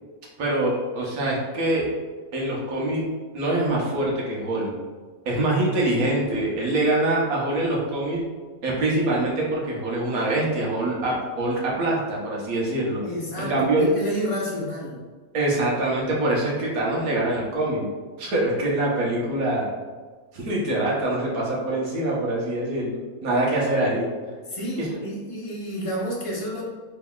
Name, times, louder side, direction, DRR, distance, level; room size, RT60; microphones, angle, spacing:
voice 1, 0.4-1.8 2.3-3.0 3.3-4.7 5.3-8.2 8.6-13.0 13.4-13.8 15.3-17.8 18.2-19.7 20.3-24.1 24.9-25.0, right 1 dB, 80° right, -4 dB, 1.4 m, -24 dB
voice 2, 13.0-15.0 24.5-26.6, equal, 30° left, -5 dB, 0.7 m, -30 dB
3.7 x 3.4 x 2.3 m, 1.4 s
omnidirectional pair, 1.5 m